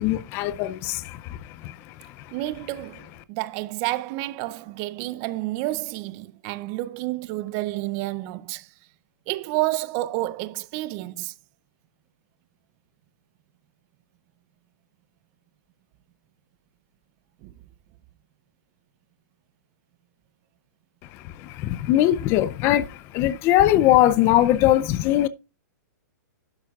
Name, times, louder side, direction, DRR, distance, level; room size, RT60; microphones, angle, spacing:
voice 1, 0.0-2.3 21.1-25.3, left 13 dB, 25° left, 0.4 m, -21 dB
voice 2, 2.3-8.7 9.3-11.3 17.4-17.5, right 18 dB, 30° right, 0.5 m, -30 dB
11.5 x 10.0 x 2.3 m
hypercardioid pair, 155°, 10 cm